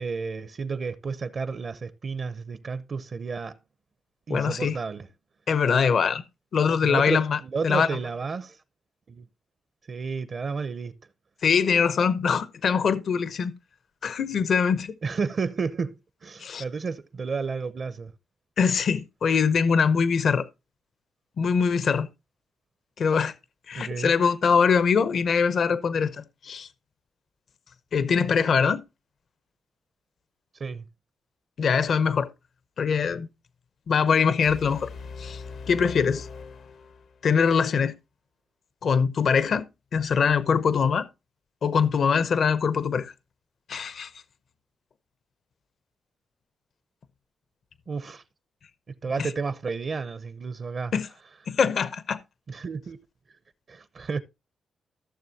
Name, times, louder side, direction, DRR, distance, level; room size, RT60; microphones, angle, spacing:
voice 1, 0.0-3.6 4.3-5.1 6.8-8.6 9.1-9.2 9.9-11.0 15.0-18.1 23.7-24.1 30.6-30.8 47.9-48.2 49.0-50.9 52.5-53.0 53.7-54.2, right 5 dB, 50° right, 0.6 m, -31 dB
voice 2, 4.3-4.8 5.5-6.2 6.5-7.9 11.4-13.5 14.0-14.9 16.4-16.6 18.6-20.5 21.4-22.1 23.0-23.3 23.7-26.7 27.9-28.8 31.6-32.3 32.8-33.3 33.9-34.9 35.2-35.4 35.7-36.3 37.2-37.9 38.8-39.6 39.9-41.1 41.6-43.1 43.7-44.1 49.2-49.3 50.9-51.1 51.5-52.2, left 6 dB, 65° left, 0.7 m, -23 dB
sound 1, 34.4-37.5, left 4 dB, 80° left, 1.1 m, -41 dB
15.0 x 6.9 x 2.8 m
cardioid pair, 100°, 0 cm